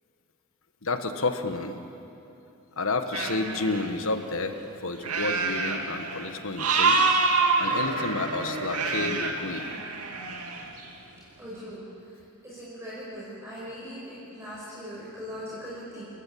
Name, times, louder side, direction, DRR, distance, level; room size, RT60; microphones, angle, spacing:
voice 1, 0.8-1.8 2.8-7.0 7.6-9.7, left 3 dB, 65° left, 8 dB, 1.5 m, -30 dB
sound 1, 3.1-3.9 5.0-6.3 6.6-10.7, right 4 dB, 85° right, 2.4 m, -26 dB
voice 2, 11.4-11.8 12.4-16.0, equal, 15° right, -8 dB, 5.5 m, -40 dB
29.5 x 14.5 x 8.7 m, 2.8 s
head